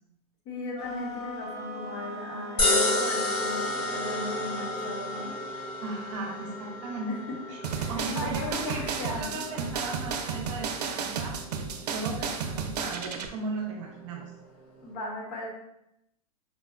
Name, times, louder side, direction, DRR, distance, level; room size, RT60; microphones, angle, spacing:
voice 1, 0.4-5.3 7.1-9.4 14.8-15.5, left 2 dB, 45° left, -2 dB, 1.0 m, -37 dB
sound 1, 0.7-5.4, left 1 dB, 20° left, 1.1 m, -40 dB
sound 2, 2.6-14.9, left 2 dB, 85° left, 1.1 m, -33 dB
voice 2, 5.8-7.1 7.5-7.6 7.9-14.3, right 3 dB, 50° right, 0 dB, 0.7 m, -36 dB
sound 3, 7.6-13.3, right 6 dB, 90° right, 0.5 m, -33 dB
4.1 x 2.1 x 2.3 m, 0.82 s
hypercardioid pair, 145°, 20 cm